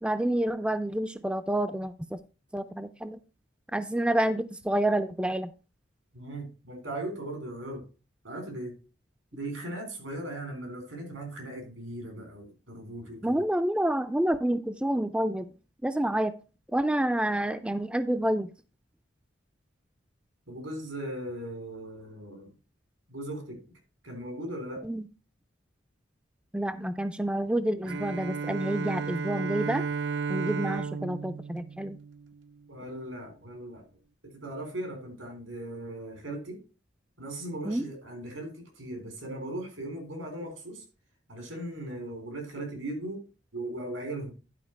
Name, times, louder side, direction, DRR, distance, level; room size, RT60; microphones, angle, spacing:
voice 1, 0.0-2.2 2.5-3.2 3.7-5.5 13.2-15.5 15.8-16.3 16.7-18.5 24.8-25.0 26.5-29.8 30.3-32.0 37.7-37.8, right 1 dB, 5° right, 10 dB, 0.3 m, -28 dB
voice 2, 6.1-7.8 8.2-8.7 9.3-13.5 20.5-22.5 23.1-23.6 24.0-24.8 32.7-33.8 34.2-36.6 37.2-40.8 41.3-43.2 43.5-44.3, right 1 dB, 90° right, 4 dB, 3.7 m, -38 dB
Bowed string instrument, 27.8-32.6, right 5 dB, 65° right, 0.5 m, -33 dB
11.0 x 5.0 x 4.5 m, 0.33 s
head